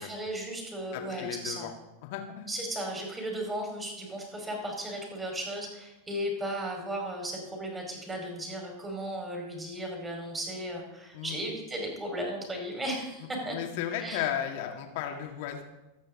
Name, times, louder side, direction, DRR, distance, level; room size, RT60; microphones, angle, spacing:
voice 1, 0.0-1.7 2.5-13.6 14.0-14.2, right 1 dB, 10° right, 1 dB, 4.9 m, -35 dB
voice 2, 0.9-1.7 2.0-2.5 11.1-11.4 13.5-15.6, left 10 dB, 50° left, 4 dB, 2.2 m, -35 dB
24.5 x 9.2 x 3.8 m, 0.97 s
figure-of-eight pair, 90°, 0 cm